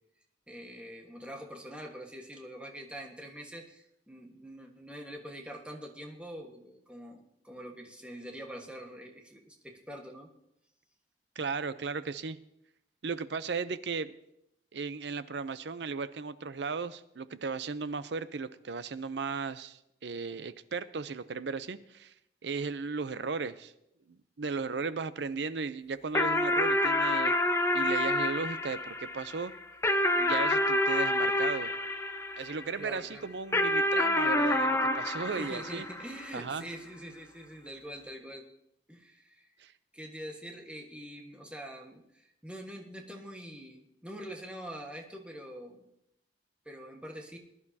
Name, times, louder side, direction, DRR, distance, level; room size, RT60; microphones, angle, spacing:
voice 1, 0.5-10.3 32.8-33.2 35.3-38.5 38.9-39.5 39.9-45.9 46.6-47.4, equal, 5° right, 1 dB, 1.4 m, -44 dB
voice 2, 11.4-12.4 13.0-14.2 14.7-22.1 22.4-23.7 24.1-27.3 27.7-29.5 30.2-31.7 32.4-35.8 36.3-36.6 39.6-39.7, right 4 dB, 70° right, 14 dB, 0.6 m, -36 dB
sound 1, 26.1-32.8 33.5-36.3, left 1 dB, 15° left, 0.8 m, -28 dB
20.5 x 11.0 x 2.8 m, 0.80 s
head